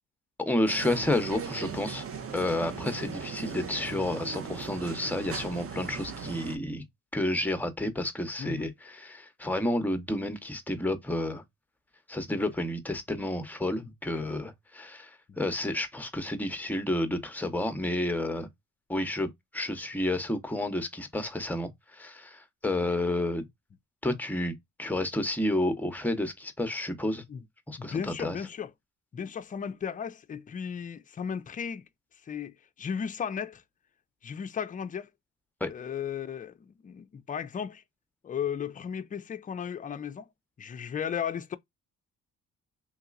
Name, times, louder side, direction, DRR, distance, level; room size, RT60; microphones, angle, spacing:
voice 1, 0.4-2.0 2.3-6.8 7.1-11.4 12.1-18.5 18.9-23.5 24.0-27.2 27.7-28.4 35.6-35.7, left 1 dB, 5° left, 0.8 m, -30 dB
sound 1, 0.7-6.6, right 6 dB, 45° right, 0.7 m, -38 dB
voice 2, 27.8-28.7 29.1-31.8 32.3-33.6 34.2-35.1 35.7-37.8 38.2-40.3 40.6-41.6, left 7 dB, 25° left, 0.4 m, -35 dB
3.2 x 2.8 x 2.4 m
cardioid pair, 90°, 30 cm